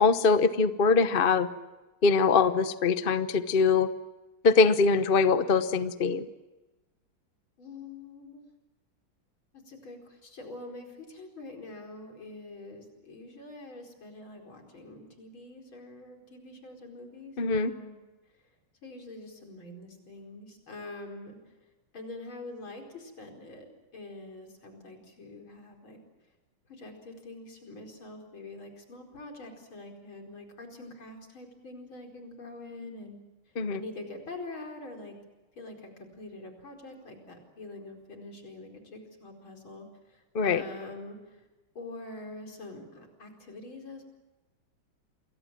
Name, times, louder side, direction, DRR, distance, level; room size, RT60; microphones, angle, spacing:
voice 1, 0.0-1.5 2.0-3.9 4.4-6.2 17.4-17.7 33.6-33.8 40.3-40.6, left 4 dB, 40° left, 11 dB, 0.8 m, -23 dB
voice 2, 7.6-8.4 9.5-18.0 18.8-21.4 21.9-23.7 23.9-26.0 26.7-33.2 33.7-35.2 35.6-41.4 41.8-44.1, left 2 dB, 75° left, 3 dB, 5.4 m, -45 dB
28.5 x 22.5 x 7.5 m, 1.1 s
omnidirectional pair, 2.2 m